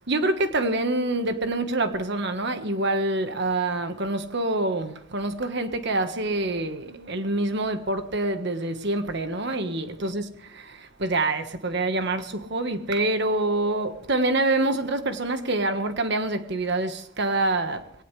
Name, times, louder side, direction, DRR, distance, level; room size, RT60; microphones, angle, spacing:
voice 1, 0.1-10.2 10.6-17.8, right 2 dB, 55° right, 1.4 m, -26 dB
22.0 x 18.5 x 3.3 m
head